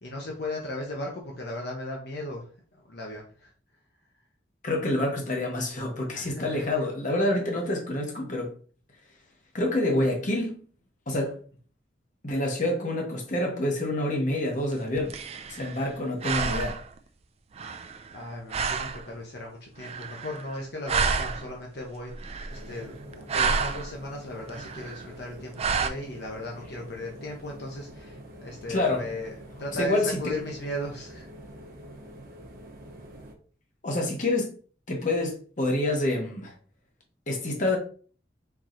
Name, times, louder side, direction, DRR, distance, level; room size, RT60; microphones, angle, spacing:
voice 1, 0.0-2.5 2.7-3.5 6.1-6.9 18.1-31.3, left 1 dB, 60° left, 1.0 m, -37 dB
voice 2, 4.6-8.5 9.5-10.6 11.1-11.4 12.2-15.1 15.5-16.8 28.7-29.1 29.8-30.3 33.8-34.6 34.9-36.5 37.3-37.8, left 1 dB, 45° left, 1.2 m, -27 dB
sound 1, 14.7-17.0 17.6-18.2 18.5-19.1 19.8-20.6 20.9-21.6 22.1-22.8 23.1-23.9 24.5-25.1 25.6-25.9, right 5 dB, 35° right, 0.4 m, -30 dB
sound 2, 22.5-33.3, right 1 dB, 55° right, 0.9 m, -46 dB
4.6 x 2.9 x 3.8 m
head